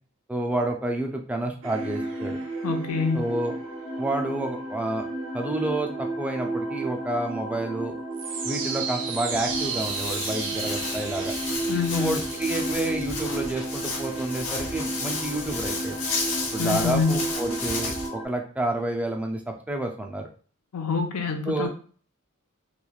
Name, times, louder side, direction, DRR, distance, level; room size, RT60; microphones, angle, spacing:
voice 1, 0.3-2.4 3.1-3.5 4.0-5.0 5.3-7.9 8.4-11.3 11.9-16.0 16.5-20.3 21.5-21.7, right 2 dB, 5° right, 3 dB, 0.3 m, -29 dB
sound 1, 1.6-18.2, right 2 dB, 60° right, 0.5 m, -32 dB
voice 2, 2.6-3.2 11.7-12.2 16.6-17.1 20.7-21.7, left 5 dB, 80° left, 5 dB, 0.5 m, -26 dB
Walk footsteps, 9.3-18.1, left 3 dB, 65° left, 0.9 m, -33 dB
3.0 x 2.2 x 2.3 m, 0.43 s
head